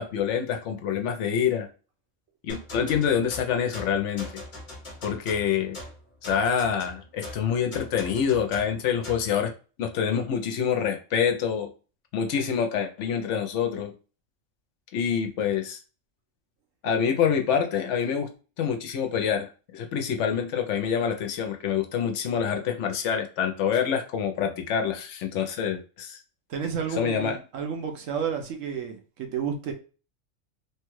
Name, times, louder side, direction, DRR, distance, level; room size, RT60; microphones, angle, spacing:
voice 1, 0.0-1.7 2.4-4.3 5.0-5.8 6.2-9.5 9.8-11.7 12.1-13.9 14.9-15.8 16.8-18.3 18.6-26.2 27.0-27.4, left 7 dB, 70° left, 0.9 m, -26 dB
sound 1, 2.5-9.3, left 1 dB, 40° left, 1.2 m, -41 dB
voice 2, 26.5-29.7, right 7 dB, 85° right, 1.1 m, -31 dB
3.2 x 2.3 x 3.0 m
omnidirectional pair, 1.3 m